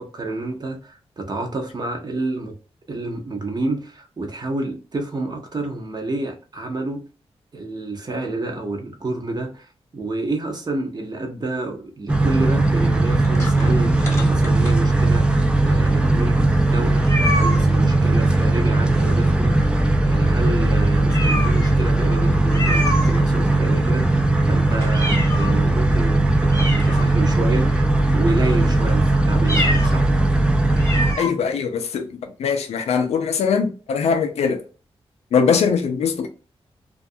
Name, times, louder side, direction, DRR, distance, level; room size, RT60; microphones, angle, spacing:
voice 1, 0.0-2.5 2.9-7.0 7.5-17.1 17.4-19.6 20.0-30.1, right 2 dB, 40° right, 0.7 m, -29 dB
sound 1, 12.1-31.1, right 2 dB, 10° right, 0.4 m, -18 dB
sound 2, 13.1-15.2 15.8-15.9 16.1-16.2 17.0-17.7 18.9-19.5 19.8-19.9 20.4-20.5 21.1-21.8 22.5-23.6 24.0-25.6 26.1-26.2 26.5-27.5 28.0-28.3 29.4-30.0 30.3-30.4 30.8-31.3, left 1 dB, 25° left, 0.9 m, -27 dB
voice 2, 31.2-34.6 35.3-36.3, left 6 dB, 90° left, 0.4 m, -21 dB
2.3 x 2.2 x 2.6 m
cardioid pair, 85°, 11 cm